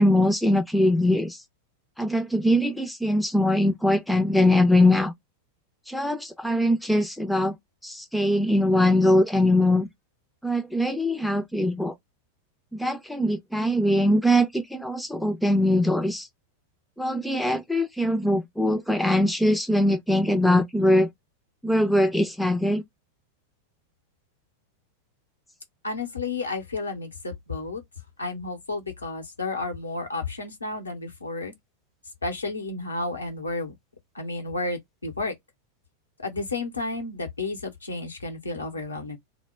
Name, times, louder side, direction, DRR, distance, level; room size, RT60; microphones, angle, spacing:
voice 1, 0.0-1.4 2.0-5.1 5.9-7.6 7.8-9.9 10.4-11.9 12.7-16.3 17.0-21.1 21.6-22.8, left 1 dB, ahead, 0.4 m, -22 dB
voice 2, 25.8-27.8 28.2-31.5 32.2-33.7 34.1-35.3 36.2-39.2, left 3 dB, 80° left, 0.7 m, -32 dB
2.0 x 2.0 x 3.3 m
figure-of-eight pair, 90°, 0 cm